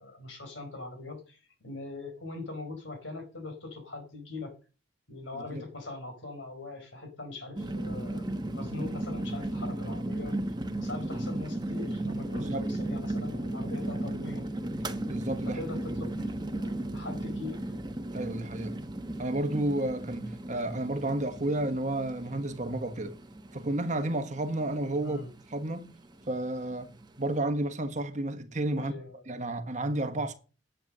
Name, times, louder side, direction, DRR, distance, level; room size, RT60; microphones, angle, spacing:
voice 1, 0.0-4.5 5.1-10.4 10.8-14.5 15.5-17.6 25.0-25.3 28.7-29.2, left 3 dB, 75° left, 4.5 m, -41 dB
sound 1, 7.6-27.4, right 1 dB, 20° right, 1.1 m, -35 dB
voice 2, 15.1-15.6 18.1-18.8 19.2-23.2 23.5-25.2 25.5-25.9 26.3-28.9 29.3-30.3, right 1 dB, 40° right, 1.4 m, -31 dB
10.5 x 7.6 x 6.6 m
head